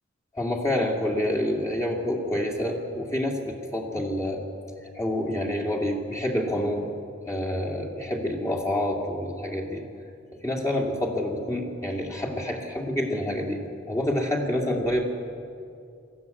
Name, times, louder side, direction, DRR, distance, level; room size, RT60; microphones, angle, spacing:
voice 1, 0.3-4.4 4.8-6.9 7.3-9.9 10.3-15.0, left 1 dB, 15° left, 0 dB, 2.3 m, -28 dB
20.5 x 14.5 x 9.5 m, 2.5 s
head